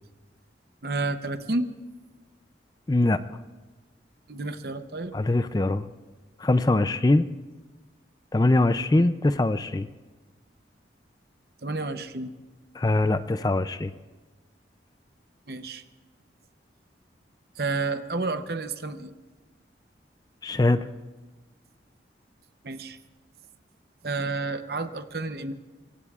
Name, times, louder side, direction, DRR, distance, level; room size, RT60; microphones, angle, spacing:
voice 1, 0.8-1.7 4.3-5.2 8.9-9.1 11.6-12.3 15.5-15.8 17.6-19.1 22.6-23.0 24.0-25.5, right 3 dB, 55° right, 9 dB, 0.8 m, -30 dB
voice 2, 2.9-3.2 5.1-5.9 6.4-7.3 8.3-9.9 12.8-13.9 20.4-20.9, left 2 dB, 20° left, 11 dB, 0.4 m, -22 dB
24.5 x 23.5 x 2.4 m, 1.2 s
head